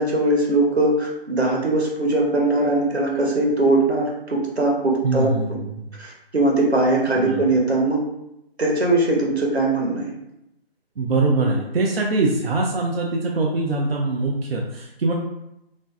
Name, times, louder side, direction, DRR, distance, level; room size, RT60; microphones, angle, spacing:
voice 1, 0.0-5.3 6.0-8.0 8.6-10.1, right 2 dB, 90° right, -1 dB, 0.9 m, -20 dB
voice 2, 5.0-5.9 7.2-7.4 11.0-15.1, right 3 dB, 65° right, -1 dB, 0.5 m, -23 dB
2.6 x 2.5 x 2.3 m, 0.85 s
figure-of-eight pair, 145°, 31 cm